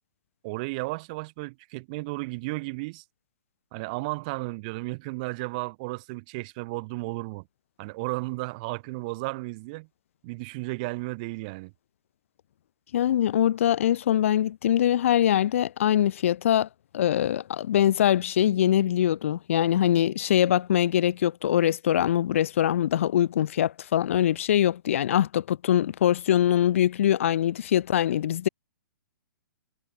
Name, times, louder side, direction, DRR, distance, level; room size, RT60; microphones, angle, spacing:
voice 1, 0.4-3.0 3.7-7.4 7.8-9.9 10.2-11.7, right 25 dB, 25° right, 5.6 m, -34 dB
voice 2, 12.9-16.7 16.9-28.5, left 11 dB, 40° left, 2.7 m, -23 dB
hypercardioid pair, 175°, 11 cm